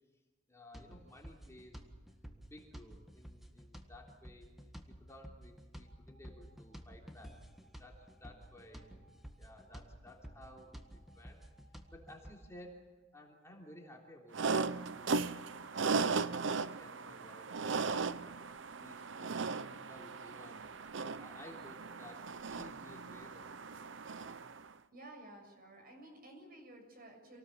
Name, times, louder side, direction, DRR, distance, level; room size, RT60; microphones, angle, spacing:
voice 1, 0.5-1.8 2.4-4.5 4.9-7.4 7.8-8.9 9.4-11.4 11.9-12.8 13.1-14.5 14.9-18.4 18.8-20.7 21.2-23.9, left 1 dB, 15° left, -1 dB, 3.3 m, -56 dB
sound 1, 0.7-12.4, equal, ahead, 1.7 m, -53 dB
sound 2, 5.9-6.8 7.3-9.8 10.3-12.7 13.0-14.1 14.6-17.8 18.3-24.6 25.0-25.1, right 2 dB, 85° right, 7.5 m, -69 dB
sound 3, 14.3-24.6, right 4 dB, 70° right, 0.7 m, -37 dB
voice 2, 24.9-27.4, right 1 dB, 50° right, 3 dB, 6.7 m, -53 dB
27.5 x 18.5 x 7.4 m, 1.2 s
head